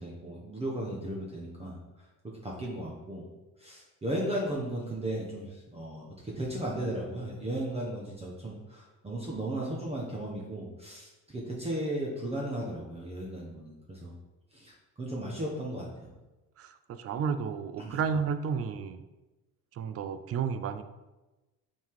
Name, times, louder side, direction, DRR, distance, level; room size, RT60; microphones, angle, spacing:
voice 1, 0.0-2.0 2.4-3.3 3.6-14.1 14.5-15.9 17.8-18.0, right 1 dB, 20° right, -3 dB, 1.0 m, -35 dB
voice 2, 16.6-19.0 19.7-20.8, right 6 dB, 45° right, 10 dB, 0.5 m, -32 dB
5.4 x 3.7 x 4.7 m, 1.1 s
cardioid pair, 125°, 34 cm